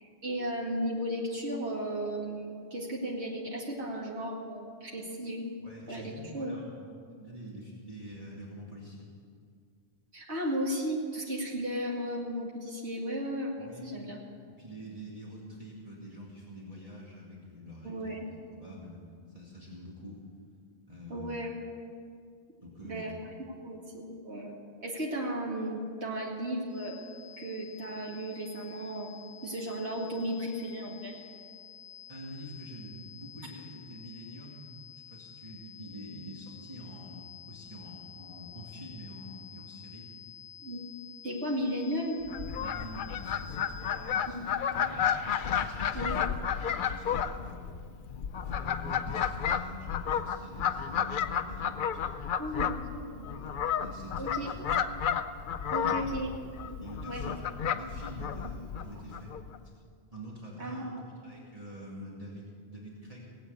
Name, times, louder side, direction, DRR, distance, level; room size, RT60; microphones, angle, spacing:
voice 1, 0.0-5.4 5.9-6.5 10.1-14.2 17.8-18.3 21.1-21.5 22.8-23.1 23.6-27.0 27.4-29.1 29.4-31.2 40.6-40.8 41.2-42.2 44.3-44.5 44.7-44.9 45.9-46.2 52.4-53.3 54.2-54.5 55.7-56.8 57.1-57.4 60.6-61.0, equal, 75° right, -3 dB, 2.5 m, -35 dB
voice 2, 5.6-6.9 7.2-9.1 13.6-14.1 14.5-18.1 18.5-19.0 19.3-20.2 20.9-21.3 22.6-23.1 32.1-34.7 34.9-40.1 42.6-45.1 45.5-47.7 48.4-52.3 53.8-54.8 55.7-56.1 56.8-59.3 60.1-60.8 61.2-63.2, equal, 35° right, -5 dB, 2.3 m, -46 dB
sound 1, 26.7-44.4, left 9 dB, 15° left, 4.3 m, -51 dB
Fowl, 42.3-59.6, left 8 dB, 55° left, 0.7 m, -32 dB
18.5 x 8.3 x 8.2 m, 2.2 s
omnidirectional pair, 1.1 m